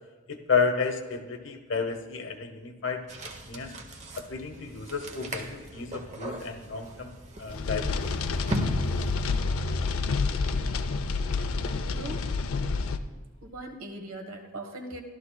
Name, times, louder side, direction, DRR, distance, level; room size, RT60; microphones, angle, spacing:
voice 1, 0.3-3.1 3.5-3.7 4.2-7.1 7.4-8.1, left 5 dB, 65° left, 6 dB, 1.0 m, -31 dB
sound 1, 3.1-9.4, right 1 dB, 35° right, 0.9 m, -38 dB
sound 2, 7.5-13.0, left 4 dB, 80° left, 0.5 m, -28 dB
voice 2, 10.4-10.9 11.5-12.3 13.4-15.0, right 1 dB, 80° right, 4 dB, 1.4 m, -41 dB
14.5 x 12.0 x 2.3 m, 1.4 s
head